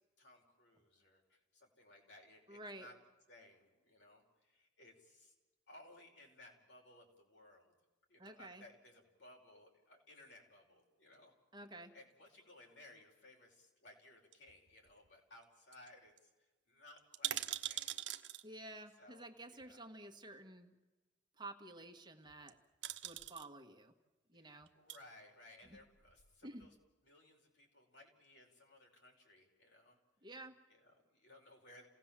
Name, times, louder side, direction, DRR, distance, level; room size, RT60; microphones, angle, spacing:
voice 1, 0.2-2.9 3.3-5.3 5.7-7.7 8.1-11.3 11.9-17.9 19.0-19.2 19.5-19.8 24.3-26.8 27.0-30.0 30.7-31.9, left 1 dB, 70° left, 0 dB, 5.4 m, -61 dB
voice 2, 2.5-2.9 8.2-8.6 11.5-11.9 18.4-20.7 21.4-22.6 23.0-23.9 24.3-24.7 26.4-26.7 30.2-30.6, right 2 dB, 25° right, 4 dB, 1.6 m, -51 dB
sound 1, 14.3-15.1 15.4-15.5 15.7-15.9 16.2-16.3 17.0-18.4 19.6-19.7 22.3-22.5 22.8-23.5 24.6-25.0 25.6-26.3 26.6-26.7, right 12 dB, 70° right, 1.1 m, -43 dB
28.5 x 17.5 x 7.5 m, 1.2 s
head